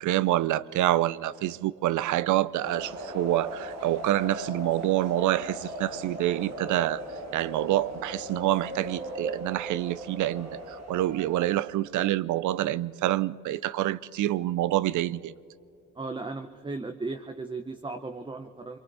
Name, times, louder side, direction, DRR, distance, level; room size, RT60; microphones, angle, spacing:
voice 1, 0.0-7.0 7.3-15.3, right 14 dB, 75° right, 0.6 m, -27 dB
sound 1, 2.6-11.6, equal, 60° right, 2.1 m, -39 dB
voice 2, 15.9-18.8, right 3 dB, 15° right, 0.9 m, -36 dB
27.5 x 23.5 x 4.1 m
cardioid pair, 90°, 30 cm